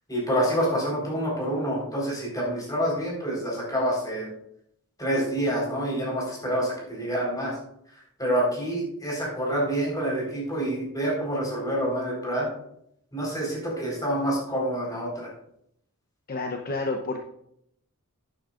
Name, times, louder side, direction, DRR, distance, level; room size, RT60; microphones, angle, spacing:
voice 1, 0.1-4.3 5.0-7.5 8.2-12.5 13.1-15.3, equal, 15° left, -3 dB, 4.4 m, -27 dB
voice 2, 16.3-17.2, left 3 dB, 40° left, 3 dB, 0.8 m, -29 dB
11.0 x 9.9 x 2.5 m, 0.74 s
head